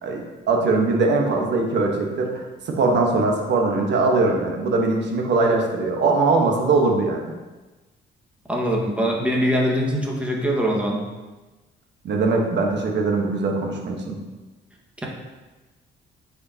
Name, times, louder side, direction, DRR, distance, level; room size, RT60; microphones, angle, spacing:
voice 1, 0.0-7.2 12.0-14.2, right 3 dB, 65° right, 1 dB, 1.3 m, -21 dB
voice 2, 8.5-11.0, equal, 5° right, -2 dB, 1.6 m, -22 dB
9.8 x 4.9 x 2.8 m, 1.2 s
cardioid pair, 90°, 20 cm